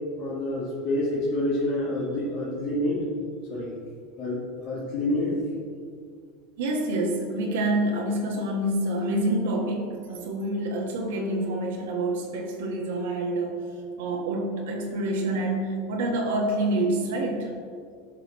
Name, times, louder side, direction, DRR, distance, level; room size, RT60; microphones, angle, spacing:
voice 1, 0.2-3.0 3.5-3.7 4.2-5.4, left 1 dB, 60° left, -8 dB, 2.0 m, -27 dB
voice 2, 6.6-13.6 14.0-17.5, right 1 dB, 80° right, 0 dB, 1.4 m, -27 dB
11.0 x 5.8 x 3.1 m, 2.1 s
hypercardioid pair, 100°, 0 cm